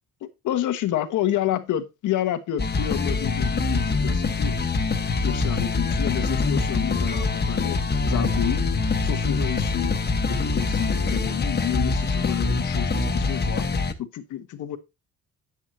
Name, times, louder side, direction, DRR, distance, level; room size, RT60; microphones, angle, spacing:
voice 1, 0.2-4.6 5.2-7.8 8.0-8.6 9.0-10.0 10.2-13.6 14.0-14.8, left 11 dB, 80° left, 1.4 m, -29 dB
sound 1, 2.6-13.9, left 3 dB, 35° left, 1.4 m, -24 dB
9.8 x 8.3 x 2.9 m
cardioid pair, 90°, 30 cm